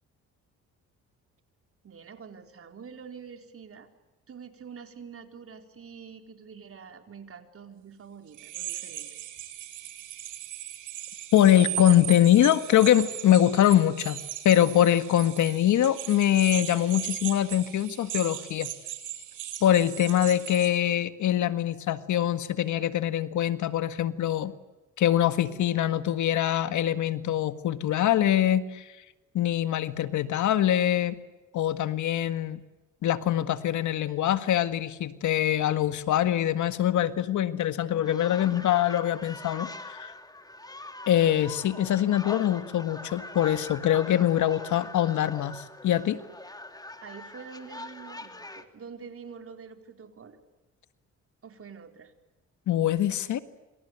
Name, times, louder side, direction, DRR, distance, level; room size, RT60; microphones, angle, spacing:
voice 1, 1.8-3.9 4.3-9.1 47.0-50.4 51.4-52.1, right 6 dB, 50° right, 6 dB, 4.3 m, -46 dB
sound 1, 8.3-20.7, right 13 dB, 90° right, 5.4 m, -38 dB
voice 2, 11.3-14.2 14.5-18.7 19.6-24.5 25.0-29.0 29.3-31.2 31.5-32.6 33.0-40.1 41.1-46.2 52.7-53.4, left 11 dB, 75° left, 11 dB, 1.8 m, -23 dB
sound 2, 38.0-48.6, left 2 dB, 15° left, 2.8 m, -43 dB
27.5 x 26.5 x 8.2 m, 1.1 s
cardioid pair, 90°, 30 cm